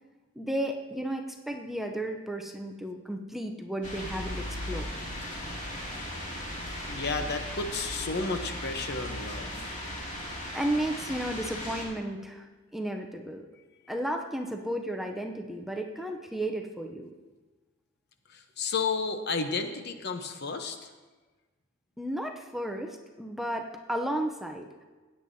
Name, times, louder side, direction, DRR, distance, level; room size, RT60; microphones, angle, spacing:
voice 1, 0.4-4.9 10.5-13.5 13.9-17.1 22.0-24.8, right 1 dB, ahead, 3 dB, 0.5 m, -33 dB
sound 1, 3.8-11.9, left 1 dB, 35° left, 2.4 m, -37 dB
voice 2, 6.9-9.8 18.3-20.9, left 4 dB, 55° left, 7 dB, 0.8 m, -32 dB
16.0 x 9.3 x 2.7 m, 1.3 s
head